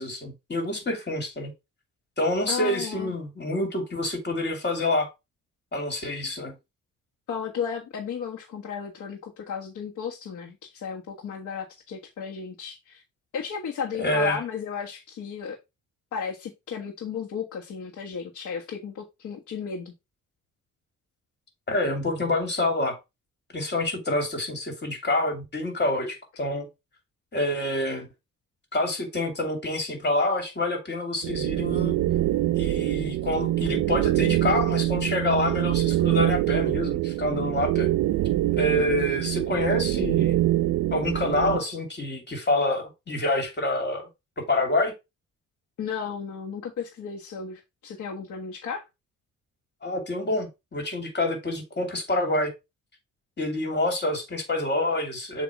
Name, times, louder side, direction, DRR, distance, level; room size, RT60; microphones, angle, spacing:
voice 1, 0.0-1.5 2.2-5.1 5.7-6.5 14.0-14.4 21.7-22.9 23.5-26.7 27.3-28.1 28.7-32.0 32.5-37.9 38.6-40.4 40.9-44.1 44.5-44.9 49.8-52.5 53.4-55.4, left 2 dB, 35° left, 2.8 m, -27 dB
voice 2, 2.5-3.1 7.3-13.0 13.3-15.6 16.1-19.9 45.8-48.8, left 6 dB, 75° left, 1.6 m, -34 dB
sound 1, 31.2-41.6, right 14 dB, 65° right, 0.5 m, -25 dB
7.3 x 3.0 x 4.8 m
cardioid pair, 90°, 30 cm